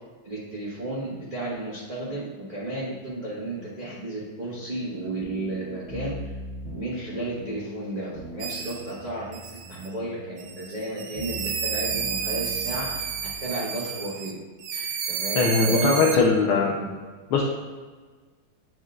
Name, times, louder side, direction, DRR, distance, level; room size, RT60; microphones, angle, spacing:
voice 1, 0.2-6.1 6.7-14.4 15.1-16.9, right 2 dB, 25° right, -10 dB, 1.3 m, -33 dB
sound 1, 3.5-13.3, right 1 dB, 40° right, 1.1 m, -41 dB
sound 2, 8.4-8.9 9.3-9.9 10.4-14.3 14.6-16.2, right 7 dB, 75° right, 1.3 m, -31 dB
voice 2, 15.4-16.8 17.3-17.4, left 4 dB, 85° left, -2 dB, 1.7 m, -21 dB
9.1 x 5.4 x 2.4 m, 1.4 s
omnidirectional pair, 2.3 m